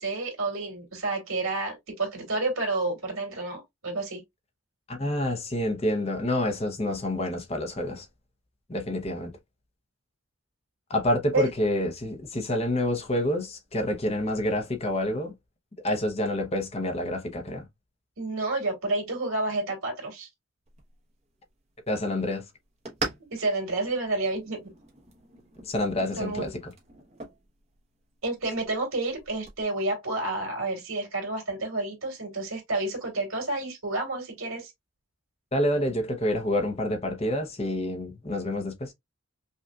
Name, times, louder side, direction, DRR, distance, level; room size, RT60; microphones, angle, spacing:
voice 1, 0.0-4.2 11.3-11.5 18.2-20.3 23.3-24.6 26.1-26.5 28.2-34.7, right 2 dB, 80° right, 2.1 m, -30 dB
voice 2, 4.9-8.0 8.7-9.3 10.9-15.3 15.8-17.7 21.9-22.4 25.6-26.5 35.5-38.9, left 1 dB, 30° left, 0.7 m, -28 dB
sound 1, 20.7-29.6, right 3 dB, 30° right, 0.9 m, -43 dB
5.3 x 2.4 x 2.3 m
head